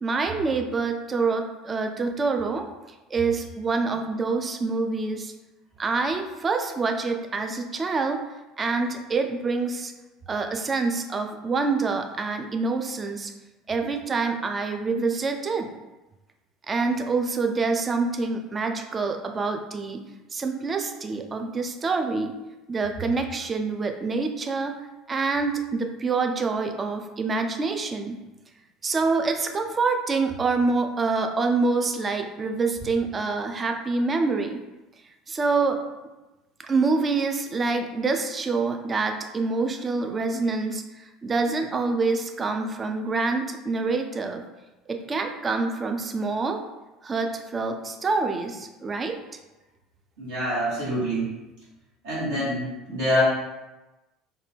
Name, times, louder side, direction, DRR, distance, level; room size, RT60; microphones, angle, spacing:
voice 1, 0.0-2.7 3.1-5.3 5.8-8.2 8.6-9.9 10.3-13.3 13.7-15.7 16.7-20.0 20.3-22.3 22.7-24.8 25.1-28.2 28.8-34.6 35.3-35.8 36.6-44.4 44.9-46.6 47.0-49.2, right 4 dB, 25° right, 5 dB, 0.3 m, -26 dB
voice 2, 50.2-51.3 52.0-53.2, equal, 60° right, -8 dB, 1.0 m, -26 dB
2.7 x 2.2 x 3.3 m, 1.1 s
figure-of-eight pair, 65°, 0 cm